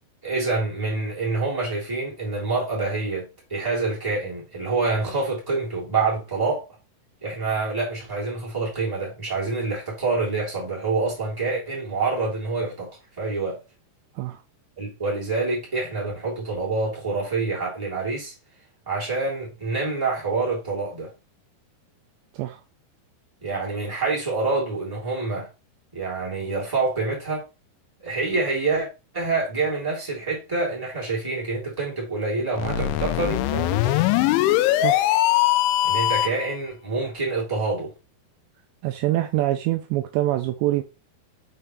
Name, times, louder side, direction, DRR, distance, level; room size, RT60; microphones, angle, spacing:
voice 1, 0.2-6.6 7.2-13.6 14.8-18.3 18.9-21.1 23.4-25.5 25.9-27.4 28.0-28.9 29.1-34.2 35.8-37.9, right 3 dB, 5° right, 2.6 m, -27 dB
sound 1, 32.5-36.5, left 14 dB, 85° left, 2.9 m, -21 dB
voice 2, 34.8-35.1 38.8-40.8, right 15 dB, 85° right, 2.6 m, -25 dB
6.7 x 5.5 x 3.2 m
omnidirectional pair, 5.4 m